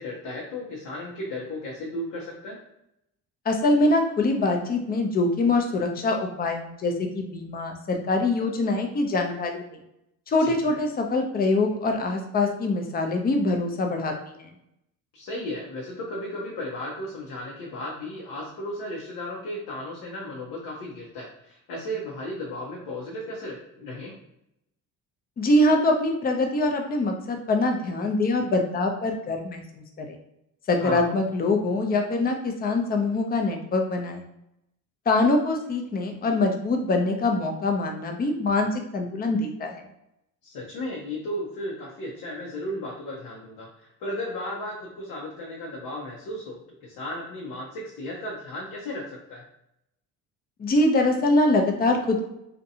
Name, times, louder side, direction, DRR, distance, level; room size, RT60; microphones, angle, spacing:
voice 1, 0.0-2.6 10.4-10.6 15.1-24.1 30.8-31.2 40.4-49.4, left 1 dB, 80° left, -3 dB, 0.8 m, -35 dB
voice 2, 3.5-9.6 10.3-14.5 25.4-30.2 30.7-34.2 35.1-39.8 50.6-52.3, left 2 dB, 25° left, 3 dB, 0.5 m, -24 dB
2.6 x 2.2 x 2.7 m, 0.82 s
cardioid pair, 85°, 35 cm